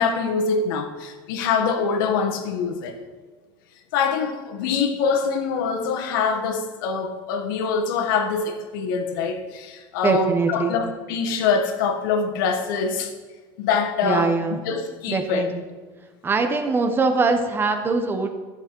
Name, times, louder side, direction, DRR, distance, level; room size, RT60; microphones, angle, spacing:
voice 1, 0.0-2.9 3.9-13.1 13.6-15.5, left 5 dB, 85° left, 6 dB, 1.4 m, -24 dB
voice 2, 10.0-10.8 14.0-14.6 15.1-15.6 16.2-18.3, right 4 dB, 20° right, 6 dB, 1.1 m, -22 dB
13.5 x 6.7 x 4.6 m, 1.4 s
cardioid pair, 145°, 11 cm